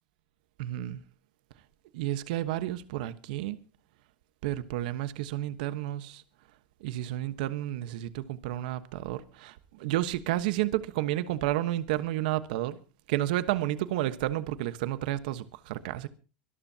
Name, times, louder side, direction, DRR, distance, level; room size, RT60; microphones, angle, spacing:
voice 1, 0.6-1.0 1.9-3.6 4.4-6.2 6.8-12.8 13.1-16.1, right 14 dB, 75° right, 1.2 m, -31 dB
24.0 x 13.0 x 2.9 m
supercardioid pair, 105°, 5 cm